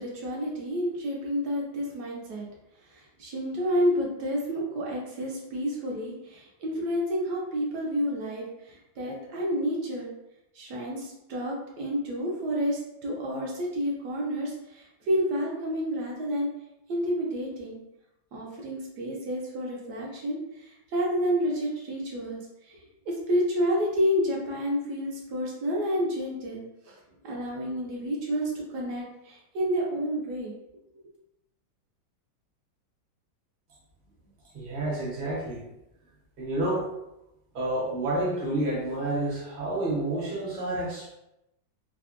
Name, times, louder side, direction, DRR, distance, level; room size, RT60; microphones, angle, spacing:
voice 1, 0.0-2.5 2.8-10.1 10.5-16.5 16.9-17.8 18.3-22.8 23.1-27.0 27.2-30.5 31.0-31.1, equal, 70° right, -2 dB, 1.1 m, -30 dB
voice 2, 34.5-35.6 36.4-36.9 37.5-41.1, right 1 dB, 45° right, -5 dB, 0.7 m, -29 dB
3.4 x 2.1 x 2.4 m, 0.88 s
omnidirectional pair, 2.1 m